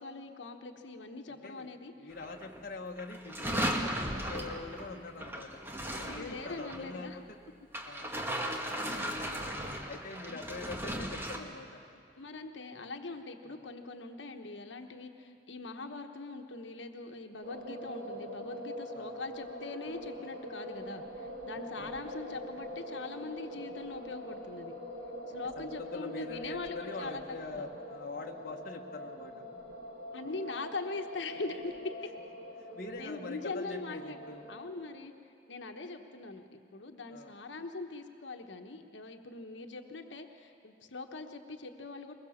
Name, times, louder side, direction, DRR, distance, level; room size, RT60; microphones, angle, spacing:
voice 1, 0.0-2.1 6.0-7.2 10.3-10.4 12.2-24.7 25.3-27.2 27.5-27.6 30.1-32.1 33.0-34.2 34.5-42.1, left 3 dB, 80° left, 5 dB, 1.2 m, -42 dB
voice 2, 1.3-1.7 2.0-5.5 5.9-7.1 7.9-8.3 8.7-8.8 9.9-12.0 13.5-13.6 18.9-19.1 21.7-22.0 25.5-29.4 32.7-34.4 37.1-37.4, left 3 dB, 50° left, 1 dB, 1.3 m, -44 dB
sound 1, 2.1-2.6 3.0-6.9 7.7-11.4, equal, 15° right, 1.6 m, -36 dB
sound 2, 17.4-34.7, equal, 70° right, 4.7 m, -44 dB
22.0 x 21.0 x 7.2 m, 2.5 s
head